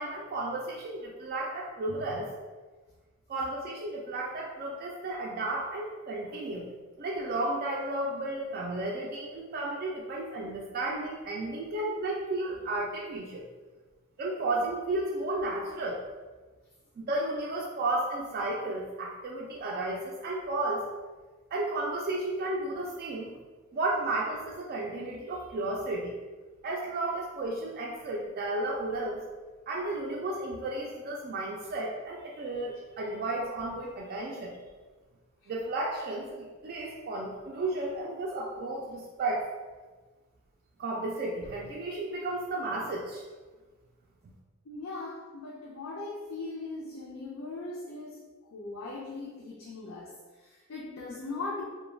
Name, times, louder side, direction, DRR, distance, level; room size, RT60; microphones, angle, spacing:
voice 1, 0.0-2.3 3.3-6.7 7.0-13.5 14.2-16.0 17.0-20.9 21.5-23.3 23.7-26.1 26.6-29.2 29.7-34.6 35.5-39.5 40.8-43.2, right 2 dB, 45° right, -2 dB, 0.3 m, -33 dB
voice 2, 44.6-51.6, left 3 dB, 80° left, -5 dB, 0.4 m, -39 dB
2.3 x 2.1 x 3.1 m, 1.3 s
head